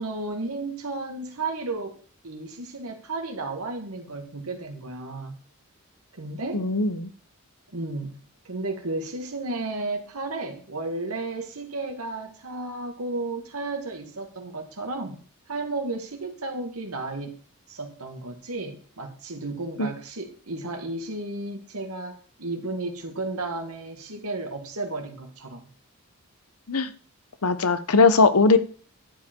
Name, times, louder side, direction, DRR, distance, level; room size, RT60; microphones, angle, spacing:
voice 1, 0.0-2.0 2.2-5.4 6.1-6.6 7.7-8.2 8.5-15.2 15.5-17.3 17.7-25.6, right 2 dB, 85° right, 3 dB, 1.9 m, -33 dB
voice 2, 6.5-7.1 19.8-19.9 26.7-26.9 27.4-28.6, left 4 dB, 90° left, 12 dB, 1.0 m, -19 dB
11.5 x 7.8 x 4.5 m, 0.41 s
head